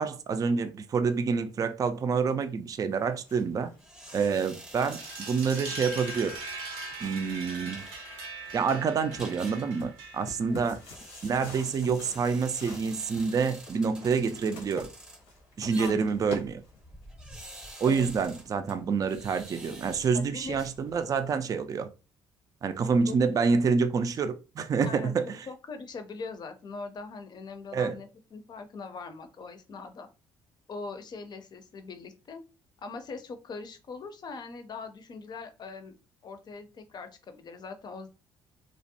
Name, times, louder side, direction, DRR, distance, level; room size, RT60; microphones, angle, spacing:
voice 1, 0.0-3.7 4.1-6.4 7.0-7.8 8.5-10.8 11.2-14.9 15.6-16.6 17.8-21.9 22.6-25.5 27.7-28.0, right 5 dB, 35° right, 0.3 m, -27 dB
sound 1, 2.9-17.0, left 3 dB, 90° left, 0.8 m, -48 dB
sound 2, 3.8-21.3, right 1 dB, 5° right, 0.7 m, -49 dB
sound 3, 4.9-10.5, right 2 dB, 90° right, 0.6 m, -40 dB
voice 2, 10.4-10.8 15.8-16.1 17.8-18.1 20.1-20.6 23.1-23.2 24.8-25.1 25.5-30.1 30.7-32.4 32.8-35.9 36.2-38.1, left 4 dB, 45° left, 0.5 m, -41 dB
2.5 x 2.0 x 2.7 m
supercardioid pair, 65°, 10 cm